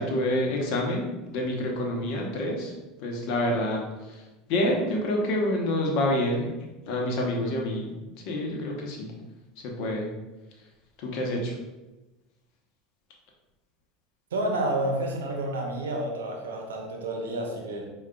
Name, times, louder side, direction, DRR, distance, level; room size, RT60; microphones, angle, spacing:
voice 1, 0.0-2.7 3.0-6.5 6.9-7.9 8.2-9.1 9.6-10.1 11.0-11.6, left 1 dB, 65° left, 0 dB, 0.8 m, -28 dB
voice 2, 14.3-17.9, right 1 dB, 90° right, 1 dB, 0.6 m, -30 dB
4.8 x 2.3 x 2.3 m, 1.1 s
hypercardioid pair, 90°, 0 cm